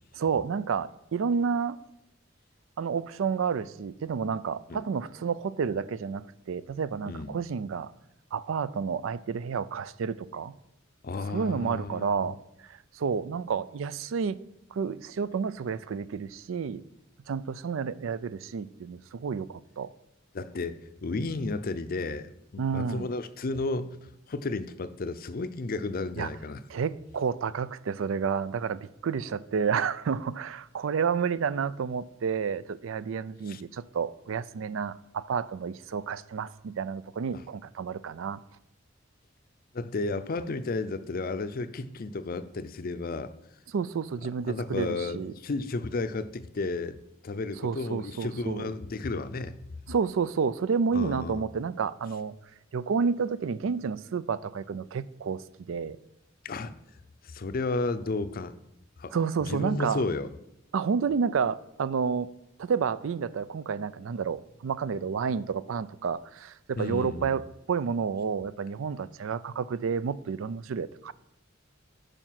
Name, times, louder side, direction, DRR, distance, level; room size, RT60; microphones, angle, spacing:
voice 1, 0.1-1.8 2.8-7.9 8.3-10.6 11.3-12.4 12.7-14.4 14.7-16.8 17.3-19.9 22.6-23.1 26.2-26.3 26.7-38.4 43.7-45.3 47.6-48.7 49.9-52.4 52.7-55.4 55.7-56.0 59.1-60.0 60.7-62.3 62.6-71.1, right 6 dB, 85° right, 0.4 m, -30 dB
voice 2, 7.1-7.4 11.0-12.3 20.3-26.6 33.5-33.6 37.3-37.4 39.7-43.3 44.5-47.0 47.2-49.6 50.9-51.4 56.4-56.7 57.3-58.5 59.0-59.1 59.5-60.3 66.8-67.3, left 3 dB, 45° left, 0.5 m, -33 dB
9.1 x 5.3 x 5.8 m
head